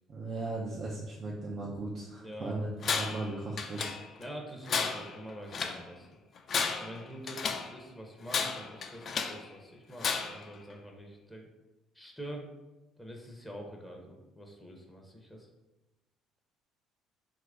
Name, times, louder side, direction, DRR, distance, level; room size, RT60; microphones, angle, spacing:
voice 1, 0.1-3.9, right 2 dB, 50° right, -3 dB, 0.5 m, -37 dB
voice 2, 2.2-2.6 4.2-6.1 6.8-11.5 11.9-12.5 13.0-15.5, equal, 5° left, 1 dB, 0.6 m, -45 dB
Tools, 2.8-3.3 3.6-4.3 4.7-5.8 6.4-7.7 8.3-9.4 10.0-10.5, left 5 dB, 50° left, 0.3 m, -33 dB
2.9 x 2.4 x 3.4 m, 1.0 s
supercardioid pair, 70°, 0 cm